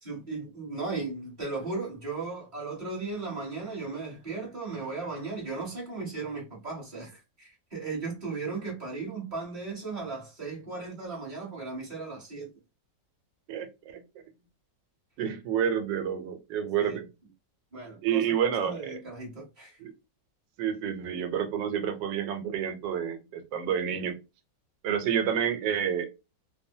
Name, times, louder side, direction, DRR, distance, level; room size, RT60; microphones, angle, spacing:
voice 1, 0.0-12.6 16.8-17.0 17.7-18.3 18.6-19.8, right 3 dB, 30° right, 1.1 m, -36 dB
voice 2, 13.5-14.0 15.2-17.1 18.0-19.0 19.8-19.9 20.6-24.1 24.8-26.1, right 8 dB, 80° right, 1.2 m, -29 dB
2.9 x 2.1 x 2.6 m
omnidirectional pair, 1.9 m